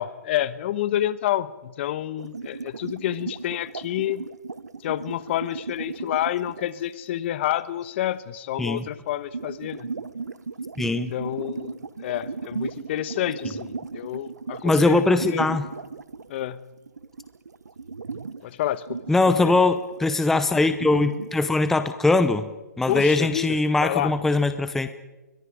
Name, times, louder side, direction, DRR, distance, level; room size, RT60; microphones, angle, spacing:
voice 1, 0.0-4.2 4.8-9.9 10.9-15.5 16.3-16.6 18.4-19.0 19.4-19.5 22.9-24.1, left 12 dB, 40° left, 15 dB, 1.1 m, -29 dB
sound 1, 2.2-6.6 9.0-16.5 16.8-18.4 18.9-21.3, right 4 dB, 90° right, 1.2 m, -36 dB
voice 2, 10.8-11.1 14.6-15.6 19.1-22.5 22.8-24.9, left 2 dB, 5° left, 10 dB, 0.7 m, -21 dB
29.0 x 22.5 x 5.0 m, 1.1 s
hypercardioid pair, 140°, 9 cm